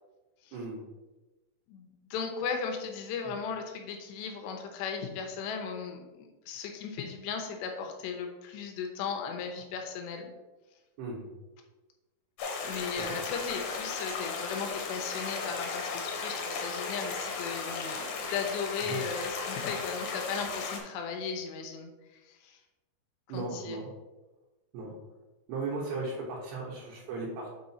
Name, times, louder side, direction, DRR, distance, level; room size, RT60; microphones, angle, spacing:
voice 1, 1.7-10.3 12.6-22.6 23.3-23.8, left 6 dB, 90° left, 3 dB, 3.2 m, -37 dB
sound 1, 12.4-20.8, left 4 dB, 65° left, 2.4 m, -36 dB
voice 2, 23.3-23.9 24.7-25.0 25.5-27.5, right 3 dB, 85° right, -6 dB, 3.5 m, -36 dB
7.7 x 4.8 x 4.2 m, 1.1 s
omnidirectional pair, 4.8 m